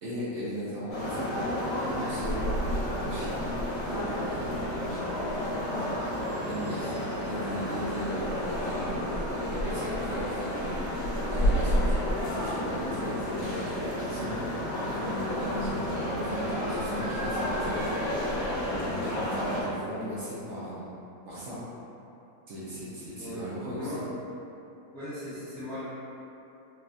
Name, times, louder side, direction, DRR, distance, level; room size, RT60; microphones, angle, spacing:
voice 1, 0.0-1.5 1.8-2.5 3.0-3.5 3.8-5.1 6.5-6.9 7.2-14.3 14.9-20.9 21.3-21.6 22.5-23.9, equal, 65° right, -9 dB, 0.8 m, -38 dB
sound 1, 0.9-19.6, equal, 65° left, 1.1 m, -30 dB
voice 2, 5.4-6.1 6.8-6.9 7.2-7.3 14.1-14.4 23.2-23.4 23.8-24.1 24.9-25.8, left 1 dB, ahead, -13 dB, 0.7 m, -39 dB
3.3 x 2.2 x 2.5 m, 2.8 s
omnidirectional pair, 1.6 m